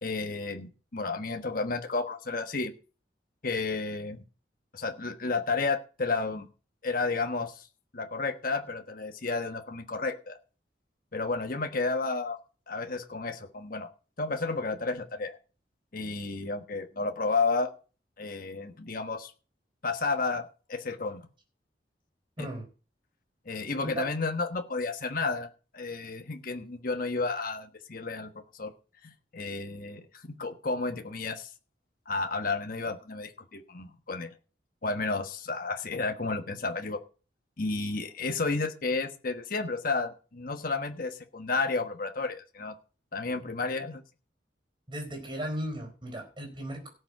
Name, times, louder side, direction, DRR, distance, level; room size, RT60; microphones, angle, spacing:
voice 1, 0.0-2.7 3.4-4.2 4.7-6.5 6.8-7.7 7.9-10.4 11.1-12.4 12.7-13.9 14.2-15.4 15.9-17.7 18.2-19.3 19.8-21.3 22.4-22.5 23.5-28.3 28.6-28.7 29.0-31.5 32.1-34.3 34.8-37.0 37.6-42.7 43.1-44.0, left 3 dB, 50° left, 5 dB, 1.3 m, -32 dB
voice 2, 44.9-46.9, right 1 dB, 30° right, 4 dB, 4.2 m, -36 dB
17.5 x 6.8 x 4.8 m, 0.36 s
head